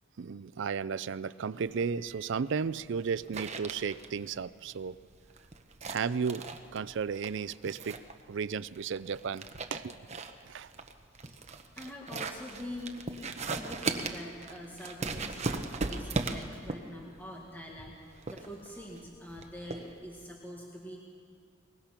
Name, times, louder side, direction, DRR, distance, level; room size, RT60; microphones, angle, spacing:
voice 1, 0.2-5.0 5.9-6.4 6.7-8.0 8.3-9.4 9.7-10.0 10.5-10.7 13.4-13.5, right 6 dB, 60° right, 16 dB, 0.4 m, -34 dB
sound 1, 1.6-20.3, right 3 dB, 35° right, 1.0 m, -39 dB
voice 2, 11.1-11.5 11.8-12.9 13.5-21.0, left 1 dB, 10° left, -2 dB, 1.8 m, -45 dB
23.0 x 20.5 x 5.9 m, 2.3 s
head